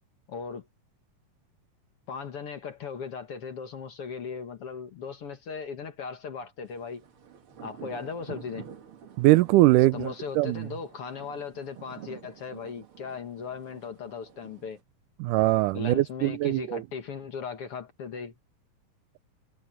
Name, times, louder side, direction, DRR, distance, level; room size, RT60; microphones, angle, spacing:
voice 1, 0.3-0.7 2.1-7.0 7.6-8.7 9.9-14.8 15.7-18.3, left 6 dB, 50° left, 2.1 m, -38 dB
sound 1, 6.8-14.8, right 8 dB, 45° right, 2.3 m, -48 dB
voice 2, 9.2-10.7 15.2-16.8, right 18 dB, 80° right, 2.1 m, -22 dB
omnidirectional pair, 3.8 m